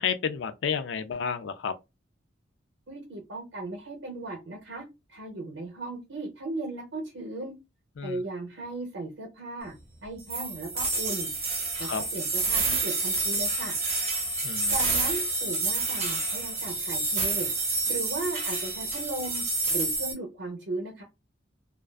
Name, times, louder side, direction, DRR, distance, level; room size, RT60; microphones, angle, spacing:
voice 1, 0.0-1.7 8.0-8.1 11.9-12.0 14.4-14.7, left 7 dB, 65° left, 0.4 m, -30 dB
voice 2, 2.9-7.5 8.0-9.7 10.0-11.3 11.8-13.7 14.7-19.4 19.7-21.0, right 2 dB, 70° right, 0.6 m, -36 dB
sound 1, 10.3-20.1, right 3 dB, 35° right, 0.7 m, -28 dB
2.4 x 2.2 x 2.3 m
head